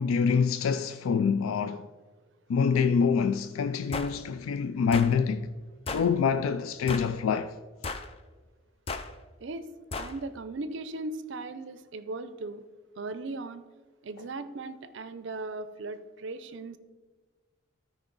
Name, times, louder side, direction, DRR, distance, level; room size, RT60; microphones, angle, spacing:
voice 1, 0.0-1.9 2.5-5.5 5.9-7.5, left 6 dB, 90° left, 0.3 m, -26 dB
sound 1, 3.9-4.1 4.9-5.1 5.9-6.1 6.9-7.2 7.8-8.1 8.9-9.1 9.9-10.1, left 3 dB, 30° left, 0.4 m, -34 dB
voice 2, 10.0-12.6 13.0-13.6 14.0-16.8, right 3 dB, 60° right, 0.5 m, -38 dB
13.0 x 5.0 x 3.9 m
head